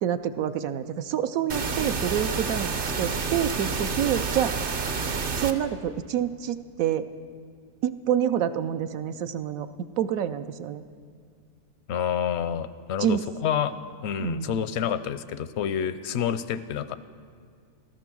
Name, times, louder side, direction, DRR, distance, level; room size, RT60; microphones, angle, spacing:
voice 1, 0.0-4.6 5.3-7.1 7.8-9.7 10.0-10.8 13.0-13.2 14.2-14.6, right 10 dB, 75° right, 10 dB, 1.0 m, -27 dB
sound 1, 1.5-5.5, right 4 dB, 45° right, 0.8 m, -29 dB
voice 2, 11.9-13.7 14.0-17.0, left 8 dB, 65° left, 14 dB, 0.7 m, -28 dB
15.5 x 13.5 x 6.2 m, 2.2 s
omnidirectional pair, 1.5 m